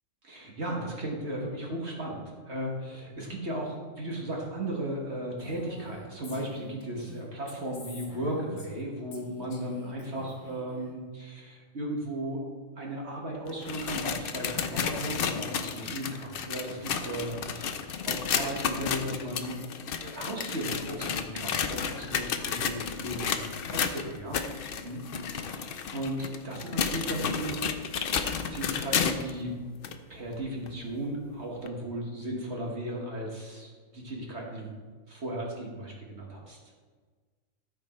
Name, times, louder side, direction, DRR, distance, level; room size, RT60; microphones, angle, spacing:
voice 1, 0.2-12.4 12.8-19.7 20.0-25.0 25.3-27.8 28.4-29.6 30.1-34.8 35.1-36.6, right 1 dB, 55° right, -2 dB, 1.7 m, -36 dB
Female speech woman speaking, 5.4-8.8 9.1-10.9, left 1 dB, 75° left, 1.9 m, -47 dB
sound 1, 13.5-29.3 29.8-29.9 30.7-30.8 31.7-31.8, left 6 dB, 55° left, 0.7 m, -32 dB
14.0 x 4.8 x 4.3 m, 1.5 s
omnidirectional pair, 1.4 m